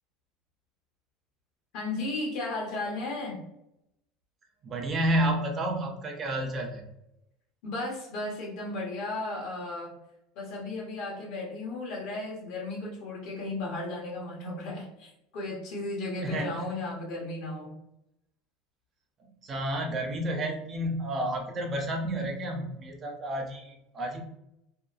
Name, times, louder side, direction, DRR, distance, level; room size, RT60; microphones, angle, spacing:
voice 1, 1.7-3.4 7.6-10.0 10.3-17.8, left 2 dB, 65° left, -2 dB, 0.9 m, -35 dB
voice 2, 4.6-6.9 16.2-16.6 19.4-24.2, right 1 dB, 35° right, 2 dB, 0.6 m, -30 dB
2.7 x 2.2 x 2.4 m, 0.84 s
hypercardioid pair, 90°, 0 cm